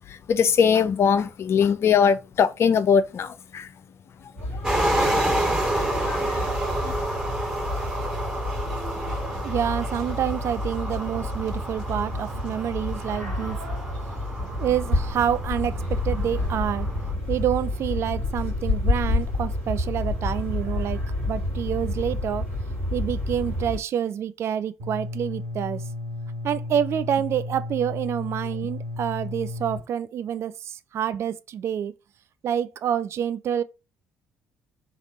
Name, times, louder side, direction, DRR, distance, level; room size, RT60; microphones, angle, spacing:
voice 1, 0.3-3.7 6.1-6.5 6.8-6.9, left 7 dB, 40° left, 0.4 m, -21 dB
sound 1, 4.4-23.8, left 2 dB, 90° right, 1.5 m, -29 dB
sound 2, 4.6-17.1, right 1 dB, 10° right, 1.8 m, -29 dB
voice 2, 9.4-13.6 14.4-16.9 17.3-21.0 21.3-22.5 22.9-25.8 26.4-31.9 32.4-33.6, right 9 dB, 45° right, 0.3 m, -27 dB
sound 3, 24.8-29.8, left 2 dB, 70° right, 1.1 m, -33 dB
3.3 x 2.4 x 4.1 m
figure-of-eight pair, 50°, 6 cm